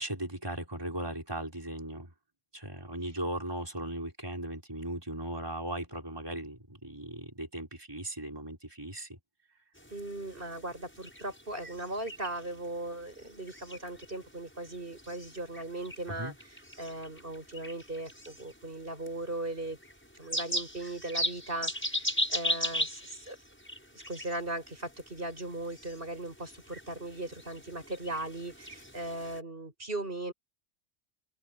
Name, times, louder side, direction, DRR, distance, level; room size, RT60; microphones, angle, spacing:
voice 1, 0.0-2.1 2.5-9.2 16.1-16.3, right 1 dB, 20° right, 5.3 m, -38 dB
sound 1, 9.8-29.4, left 1 dB, 10° left, 7.3 m, -39 dB
voice 2, 9.9-19.8 20.1-23.4 23.9-30.3, right 2 dB, 50° right, 7.0 m, -38 dB
open air
omnidirectional pair, 1.2 m